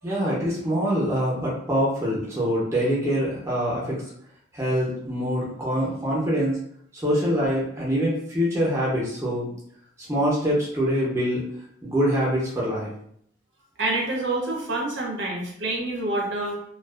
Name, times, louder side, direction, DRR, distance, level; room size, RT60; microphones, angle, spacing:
voice 1, 0.0-4.0 4.5-6.6 6.9-9.5 10.1-11.4 11.8-12.9, equal, 15° right, -6 dB, 0.6 m, -24 dB
voice 2, 13.8-16.6, right 2 dB, 75° right, -1 dB, 0.6 m, -27 dB
2.4 x 2.3 x 2.3 m, 0.67 s
head